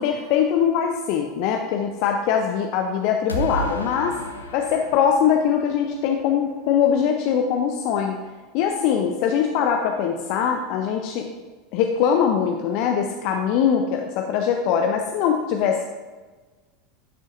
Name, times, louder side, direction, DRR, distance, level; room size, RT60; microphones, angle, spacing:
voice 1, 0.0-4.2 4.5-8.2 8.5-11.3 11.7-15.8, left 7 dB, 50° left, 3 dB, 0.6 m, -22 dB
sound 1, 3.3-6.2, equal, 85° left, 0.7 m, -32 dB
11.0 x 6.3 x 2.5 m, 1.3 s
figure-of-eight pair, 80°, 0 cm